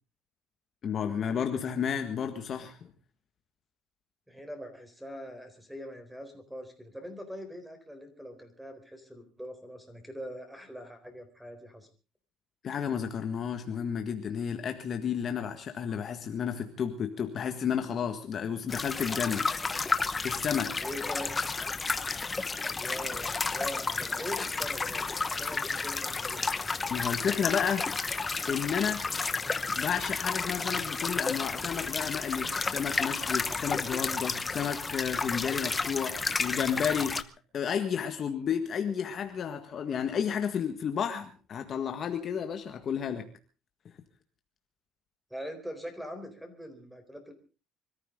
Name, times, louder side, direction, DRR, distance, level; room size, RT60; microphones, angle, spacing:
voice 1, 0.8-2.9 12.6-19.5 20.2-20.7 26.9-27.9 28.5-29.0 29.7-37.2 37.5-43.3, left 7 dB, 40° left, 6 dB, 1.7 m, -32 dB
voice 2, 4.3-11.9 20.8-21.5 22.8-26.6 45.3-47.3, equal, 5° right, 7 dB, 4.1 m, -42 dB
sound 1, 18.7-37.2, left 4 dB, 20° left, 0.9 m, -32 dB
25.5 x 14.0 x 3.8 m, 0.33 s
cardioid pair, 135°, 0 cm